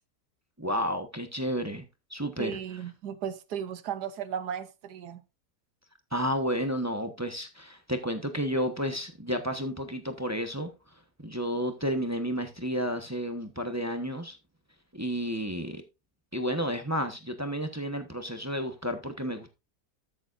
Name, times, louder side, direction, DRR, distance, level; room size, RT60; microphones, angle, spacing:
voice 1, 0.6-2.6 6.1-10.7 11.2-14.4 14.9-15.8 16.3-19.5, equal, 10° right, 1.0 m, -31 dB
voice 2, 2.4-5.2, right 8 dB, 85° right, 1.5 m, -35 dB
13.5 x 7.0 x 2.6 m
omnidirectional pair, 1.7 m